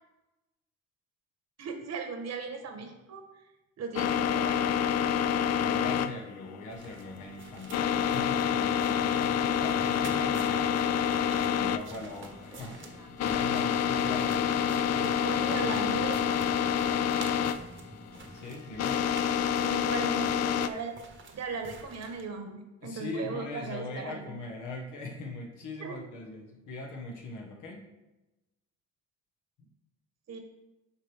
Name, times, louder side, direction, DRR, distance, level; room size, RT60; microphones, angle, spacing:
voice 1, 1.6-3.2 3.8-4.6 14.8-16.4 19.6-20.9 21.3-24.3 25.8-26.1 30.3-30.4, right 5 dB, 60° right, 5 dB, 1.2 m, -38 dB
sound 1, 3.9-20.7, left 8 dB, 60° left, 0.4 m, -28 dB
voice 2, 5.5-10.7 11.3-15.8 18.3-19.0 22.8-27.9, left 2 dB, 80° left, 0 dB, 1.5 m, -41 dB
sound 2, 6.7-22.3, right 3 dB, 40° right, 1.0 m, -49 dB
sound 3, 9.6-18.5, right 2 dB, 10° right, 0.6 m, -50 dB
7.5 x 4.8 x 3.5 m, 1.0 s
cardioid pair, 90°, 30 cm